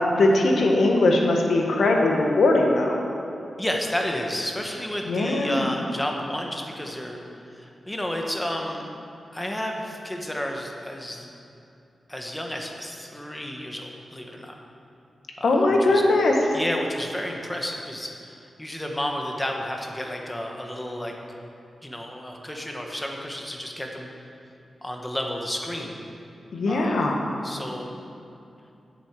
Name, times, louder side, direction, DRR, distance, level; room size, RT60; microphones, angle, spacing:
voice 1, 0.2-3.0 5.0-5.7 15.4-16.3 26.5-27.1, left 2 dB, 75° left, 0 dB, 1.5 m, -20 dB
voice 2, 3.6-7.2 7.5-8.9 9.3-11.3 12.1-14.5 15.4-16.0 16.5-21.1 21.8-24.1 24.8-26.0 26.7-27.1 27.4-27.9, left 1 dB, 10° left, 1 dB, 1.2 m, -31 dB
8.0 x 7.9 x 7.5 m, 2.7 s
wide cardioid pair, 120°, 0 cm